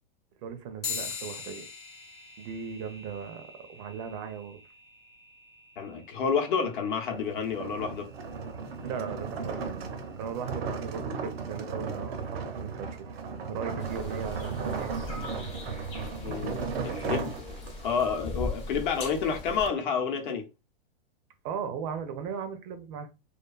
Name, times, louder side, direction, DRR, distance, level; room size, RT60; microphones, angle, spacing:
voice 1, 0.4-1.7 2.4-4.6 8.8-9.7 10.2-13.2 13.5-15.0 21.4-23.1, right 7 dB, 35° right, 0.4 m, -37 dB
sound 1, 0.8-10.7, left 5 dB, 85° left, 0.9 m, -44 dB
voice 2, 5.8-8.1 16.2-17.3 17.8-20.4, left 6 dB, 60° left, 0.7 m, -29 dB
sound 2, 7.0-18.0, right 5 dB, 85° right, 0.6 m, -35 dB
sound 3, 13.8-19.7, left 2 dB, 20° left, 0.5 m, -39 dB
2.4 x 2.3 x 2.3 m
hypercardioid pair, 130°, 30 cm